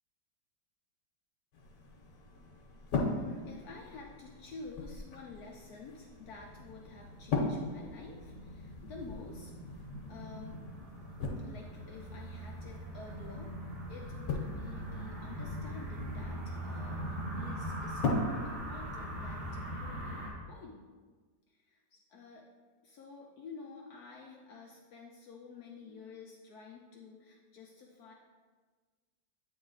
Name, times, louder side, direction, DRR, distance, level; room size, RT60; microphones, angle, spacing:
sound 1, 1.5-19.5, left 3 dB, 90° left, 1.6 m, -40 dB
voice 1, 3.0-9.5 10.1-10.7 11.4-13.6 13.9-20.9 21.5-22.5 22.8-28.1, left 4 dB, 70° left, 0 dB, 1.1 m, -50 dB
sound 2, 6.1-20.3, equal, 70° right, 1.7 m, -42 dB
8.7 x 3.6 x 3.9 m, 1.4 s
omnidirectional pair, 1.8 m